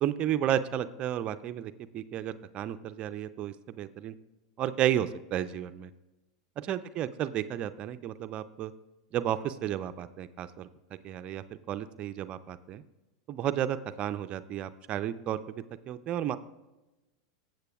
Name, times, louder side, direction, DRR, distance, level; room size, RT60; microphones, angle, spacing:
voice 1, 0.0-4.1 4.6-5.9 6.6-8.7 9.1-10.7 11.0-12.8 13.3-16.4, right 11 dB, 40° right, 12 dB, 0.4 m, -32 dB
15.5 x 7.7 x 2.3 m, 1.0 s
hypercardioid pair, 95°, 3 cm